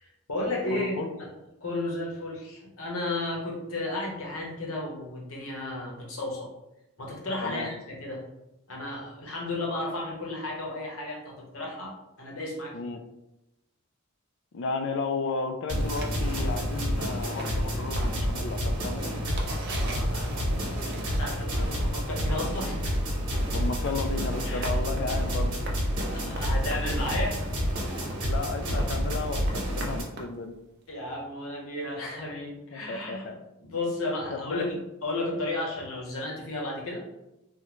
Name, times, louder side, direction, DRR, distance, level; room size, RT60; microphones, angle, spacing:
voice 1, 0.0-1.3 1.6-6.5 7.0-8.3 8.7-12.8 19.5-22.8 24.5-24.8 26.0-27.4 30.9-33.3 33.6-34.8 35.0-37.0, left 2 dB, 70° left, -3 dB, 1.0 m, -33 dB
voice 2, 0.7-1.1 7.4-7.7 12.7-13.0 14.5-19.1 23.5-25.6 28.2-30.5 32.7-33.4 34.3-34.6, left 3 dB, 55° left, 7 dB, 0.3 m, -33 dB
sound 1, 15.7-30.0, equal, 85° right, 1.0 m, -29 dB
sound 2, 15.9-21.6 21.8-30.9, right 2 dB, 50° right, 0.5 m, -43 dB
3.6 x 2.1 x 3.0 m, 0.92 s
head